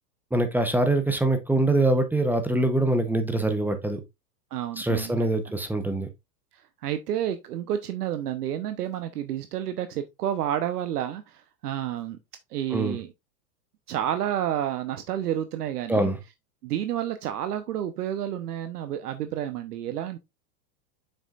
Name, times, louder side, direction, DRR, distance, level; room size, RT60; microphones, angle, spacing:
voice 1, 0.3-4.0 4.8-6.1 12.7-13.0 15.9-16.2, right 2 dB, 5° right, 0.7 m, -24 dB
voice 2, 4.5-5.1 6.8-12.2 12.5-13.1 13.9-16.1 16.6-20.2, right 11 dB, 70° right, 0.9 m, -30 dB
7.1 x 5.5 x 2.4 m
hypercardioid pair, 110°, 49 cm